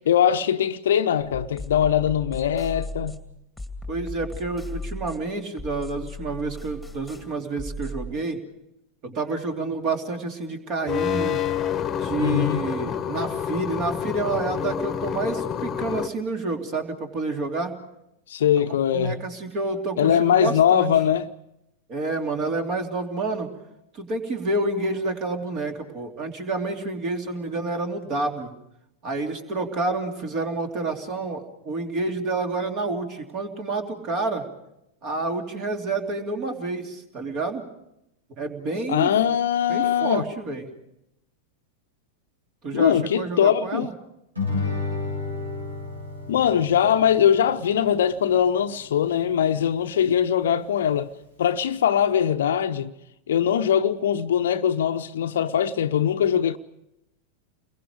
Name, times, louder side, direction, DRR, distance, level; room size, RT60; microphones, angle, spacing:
voice 1, 0.1-3.2 12.2-12.6 18.3-19.2 20.0-21.3 38.9-40.2 42.7-43.9 46.3-51.1 51.4-52.9 53.3-56.6, left 9 dB, 60° left, 0.8 m, -21 dB
sound 1, 1.2-8.1, left 2 dB, ahead, 2.4 m, -37 dB
voice 2, 3.9-8.4 9.0-11.4 12.0-17.8 18.6-20.9 21.9-23.5 23.9-28.5 29.0-34.5 35.0-37.6 38.4-39.1 39.7-40.7 42.6-43.9, right 3 dB, 35° right, 2.9 m, -29 dB
sound 2, 10.9-16.1, left 8 dB, 25° left, 1.2 m, -28 dB
Guitar, 44.3-49.4, left 3 dB, 80° right, 6.9 m, -33 dB
30.0 x 22.5 x 5.0 m
figure-of-eight pair, 90°, 0 cm